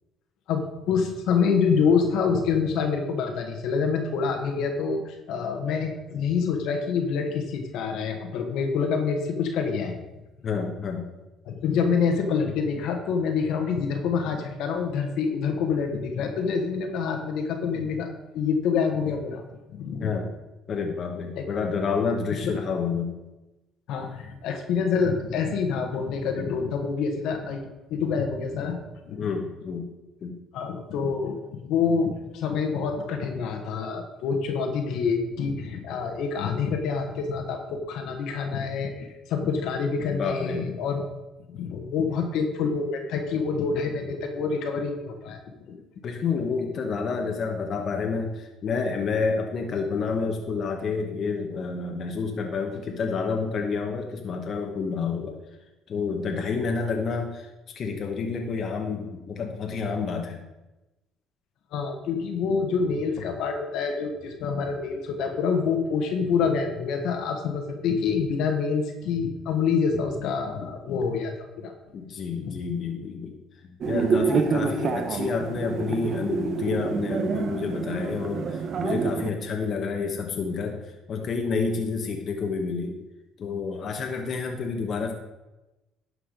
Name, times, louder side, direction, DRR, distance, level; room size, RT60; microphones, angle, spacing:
voice 1, 0.5-10.1 11.4-19.4 19.7-20.1 21.3-21.4 22.4-22.6 23.9-27.6 27.9-29.3 30.5-41.0 41.5-45.4 45.7-45.8 61.7-71.7 72.4-72.5, left 5 dB, 75° left, 4 dB, 1.5 m, -27 dB
voice 2, 10.4-11.1 20.0-20.3 20.7-23.1 29.2-29.9 30.2-30.4 40.1-40.7 46.0-55.4 55.9-57.5 57.7-60.4 71.9-83.0 83.4-85.1, left 5 dB, 50° left, 2 dB, 1.2 m, -29 dB
sound 1, 73.8-79.3, right 5 dB, 50° right, 1.0 m, -27 dB
11.5 x 4.9 x 5.1 m, 1.0 s
cardioid pair, 95°, 0 cm